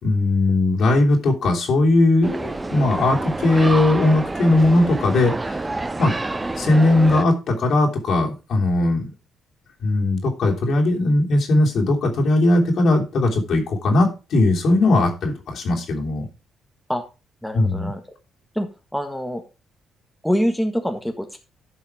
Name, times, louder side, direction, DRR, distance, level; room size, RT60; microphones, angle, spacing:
voice 1, 0.0-5.5 6.0-6.1 6.5-9.1 9.8-16.3 17.5-17.9, left 2 dB, 65° left, 1 dB, 3.1 m, -19 dB
sound 1, 2.2-7.2, right 2 dB, 20° right, 0.7 m, -28 dB
voice 2, 17.4-18.0 18.5-18.7 18.9-19.4 20.2-21.4, equal, 5° left, 5 dB, 1.5 m, -24 dB
10.5 x 5.7 x 4.6 m, 0.29 s
cardioid pair, 90°, 0 cm